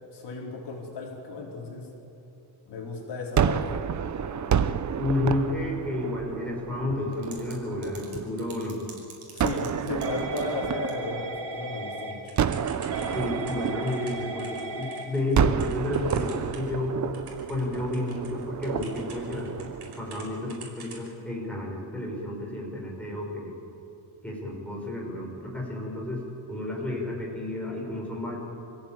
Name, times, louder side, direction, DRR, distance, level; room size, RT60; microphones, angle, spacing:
voice 1, 0.1-1.9 2.7-3.7 9.3-12.2, left 3 dB, 60° left, -1 dB, 4.6 m, -34 dB
Gunshot gunfire, 3.4-8.5 9.4-11.8 12.4-14.8 15.3-20.6, right 8 dB, 40° right, 0.8 m, -30 dB
voice 2, 5.0-8.8 13.1-17.0 17.5-19.5 20.0-23.5 24.2-26.2 26.5-28.4, left 2 dB, 5° left, -2 dB, 5.2 m, -31 dB
Typing / Telephone, 7.1-7.5 7.8-16.8 17.1-20.2 20.5-21.1, right 2 dB, 55° right, 5.4 m, -38 dB
27.0 x 16.5 x 9.0 m, 2.8 s
cardioid pair, 160°, 46 cm